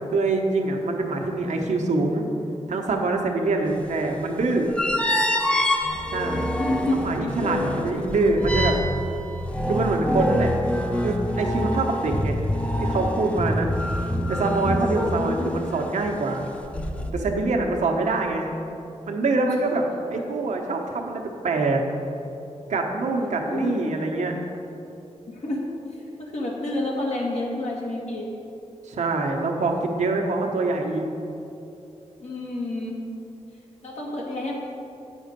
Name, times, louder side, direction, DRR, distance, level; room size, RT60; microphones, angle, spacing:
voice 1, 0.1-2.3 2.7-4.7 6.1-6.5 7.0-8.8 9.7-10.5 11.0-12.5 12.8-13.7 14.3-16.5 17.1-18.5 19.1-19.8 20.1-21.8 22.7-24.4 28.9-31.0, right 3 dB, 85° right, 1 dB, 1.0 m, -24 dB
sound 1, 3.7-3.8 4.7-15.8 16.6-17.1, left 1 dB, 10° left, 0.7 m, -26 dB
voice 2, 6.6-7.1 7.7-7.8 15.2-15.6 19.4-19.5 20.1-20.2 23.5-24.0 25.3-25.6 26.0-28.3 32.2-33.0 33.8-34.5, left 2 dB, 70° left, -3 dB, 1.9 m, -29 dB
8.5 x 6.3 x 5.2 m, 2.9 s
wide cardioid pair, 105°, 12 cm